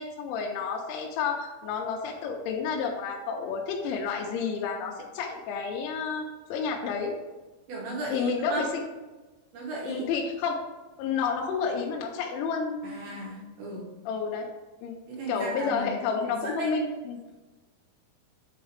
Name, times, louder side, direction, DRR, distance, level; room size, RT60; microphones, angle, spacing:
voice 1, 0.0-7.1 8.1-8.9 9.8-10.6 11.0-13.2 14.1-14.5 14.8-14.9 15.3-17.2, left 5 dB, 85° left, 0 dB, 3.0 m, -30 dB
voice 2, 7.7-8.7 9.5-10.1 12.8-13.9 15.1-15.9 16.2-16.8, right 2 dB, 75° right, -3 dB, 2.4 m, -35 dB
8.8 x 3.9 x 3.2 m, 1.2 s
omnidirectional pair, 5.4 m